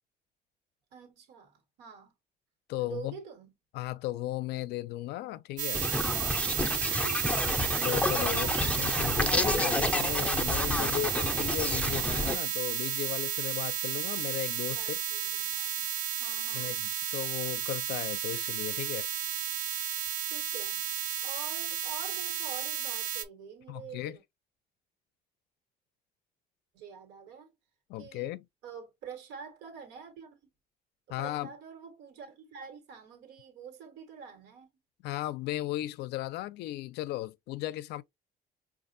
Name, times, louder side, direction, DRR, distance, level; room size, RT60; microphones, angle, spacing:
voice 1, 0.9-2.1 2.8-3.5 6.9-7.6 8.2-9.1 10.8-11.0 14.6-15.9 16.2-16.8 20.3-20.8 21.2-24.2 26.7-27.5 28.0-28.3 28.6-30.4 31.1-34.7, right 6 dB, 85° right, 1.3 m, -47 dB
voice 2, 2.7-3.1 3.7-5.9 7.8-15.0 16.5-19.1 23.7-24.2 27.9-28.5 31.1-31.5 35.0-38.0, left 16 dB, 80° left, 0.4 m, -36 dB
sound 1, 5.6-23.2, right 9 dB, 45° right, 0.6 m, -32 dB
sound 2, 5.7-12.4, left 2 dB, 10° left, 0.4 m, -30 dB
5.1 x 2.4 x 2.5 m
cardioid pair, 110°, 17 cm